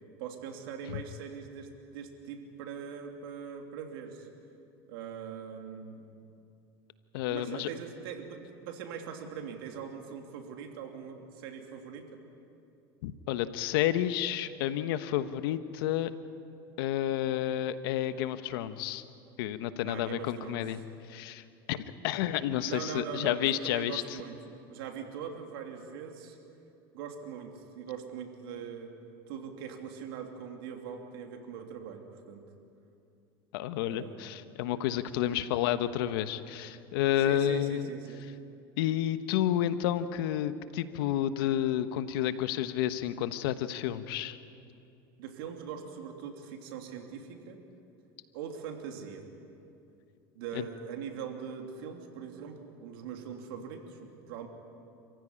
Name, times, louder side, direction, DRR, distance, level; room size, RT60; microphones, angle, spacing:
voice 1, 0.2-4.3 4.9-6.1 7.3-12.1 19.8-20.6 22.6-26.4 26.9-28.9 29.3-32.4 33.8-34.3 35.2-35.4 37.2-38.2 45.2-47.6 48.3-49.2 50.3-54.5, right 7 dB, 80° right, 3 dB, 3.0 m, -42 dB
voice 2, 7.1-7.7 13.0-16.1 16.8-19.0 19.4-20.8 21.1-21.4 21.7-24.0 33.5-37.9 38.8-44.4 50.5-50.7, left 12 dB, 80° left, 12 dB, 1.2 m, -30 dB
28.0 x 15.5 x 10.0 m, 2.6 s
supercardioid pair, 95°, 12 cm